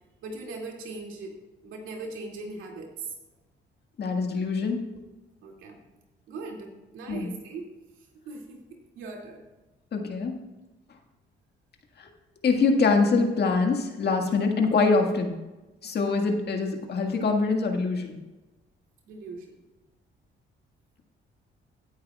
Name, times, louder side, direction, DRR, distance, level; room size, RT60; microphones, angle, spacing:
voice 1, 0.2-1.4 1.6-3.1 5.4-5.8 6.3-7.7 8.3-9.4 19.1-19.5, right 3 dB, 90° right, 0 dB, 2.5 m, -39 dB
voice 2, 4.0-4.8 7.1-7.3 9.9-10.4 12.0-12.1 12.4-15.4 15.8-18.2, left 4 dB, 55° left, 3 dB, 1.8 m, -24 dB
16.5 x 9.8 x 2.4 m, 1.1 s
cardioid pair, 90°, 20 cm